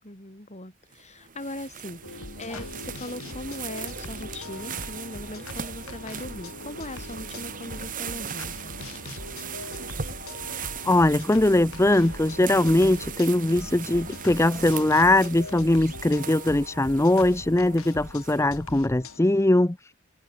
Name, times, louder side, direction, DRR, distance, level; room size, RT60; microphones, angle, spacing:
voice 1, 0.0-8.8, left 1 dB, 30° left, 5.1 m, -39 dB
sound 1, 0.9-18.7, right 7 dB, 40° right, 1.5 m, -39 dB
sound 2, 2.0-19.2, left 2 dB, 80° left, 5.1 m, -41 dB
voice 2, 10.6-19.9, left 1 dB, 15° left, 0.5 m, -21 dB
head